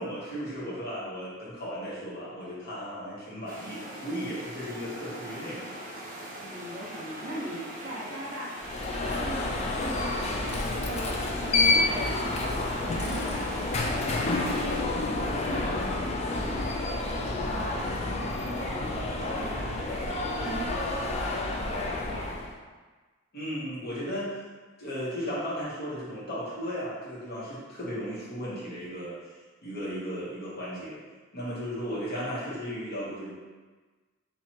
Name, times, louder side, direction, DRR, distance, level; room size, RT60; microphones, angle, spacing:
voice 1, 0.0-5.9 23.3-24.4 24.8-29.2 29.6-31.0 31.3-33.3, equal, 50° left, -8 dB, 1.2 m, -35 dB
sound 1, 3.5-14.8, equal, 40° right, 0.6 m, -42 dB
voice 2, 6.4-8.7 8.9-22.5, equal, 65° right, -4 dB, 1.0 m, -40 dB
Alarm, 8.6-22.5, left 2 dB, 30° left, 0.4 m, -29 dB
4.3 x 2.6 x 3.0 m, 1.3 s
head